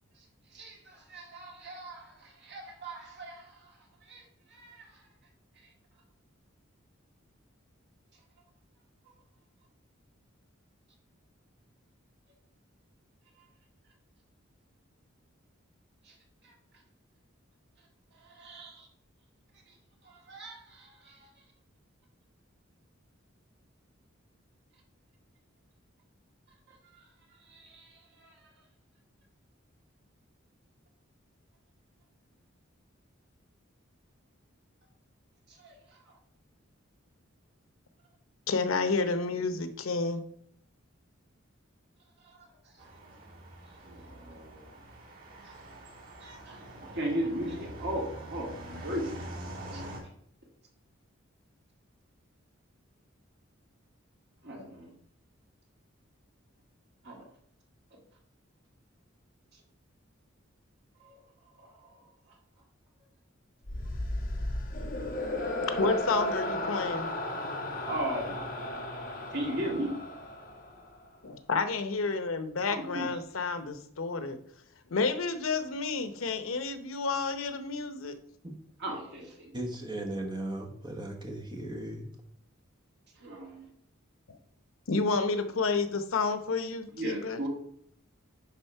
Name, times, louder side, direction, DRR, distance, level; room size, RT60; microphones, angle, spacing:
voice 1, 0.5-5.0 5.6-5.7 9.1-9.2 13.4-13.5 16.0-16.2 16.4-16.5 18.1-18.9 19.7-19.8 20.0-21.4 26.7-28.5 35.5-36.2 42.2-42.9 43.6-44.8 45.4-45.6 46.2-48.5 48.8-49.2 49.7-49.9 54.4-55.0 57.0-57.3 59.5-59.6 61.0-61.2 61.5-62.4 67.8-68.4 69.3-70.0 72.7-73.2 78.8-79.5 83.2-83.7 86.9-87.5, right 1 dB, 55° right, 1.9 m, -39 dB
voice 2, 38.5-40.3 65.7-67.1 71.2-78.2 84.3-84.4 84.9-87.4, left 4 dB, 85° left, 0.8 m, -30 dB
sound 1, 42.8-50.0, right 1 dB, 80° right, 2.6 m, -45 dB
sound 2, 63.6-71.0, left 1 dB, 45° left, 1.3 m, -34 dB
voice 3, 79.5-82.1, right 1 dB, 20° right, 1.2 m, -37 dB
10.0 x 3.6 x 4.4 m
head